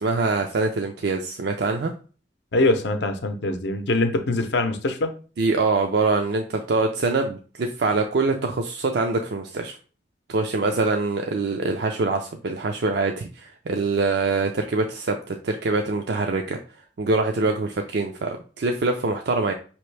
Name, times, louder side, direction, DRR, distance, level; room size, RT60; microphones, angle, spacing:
voice 1, 0.0-1.9 5.4-9.8 10.3-16.6 17.0-19.5, right 3 dB, 65° right, 4 dB, 0.4 m, -24 dB
voice 2, 2.5-5.1, left 2 dB, 70° left, 8 dB, 0.6 m, -23 dB
5.2 x 2.9 x 3.2 m, 0.38 s
head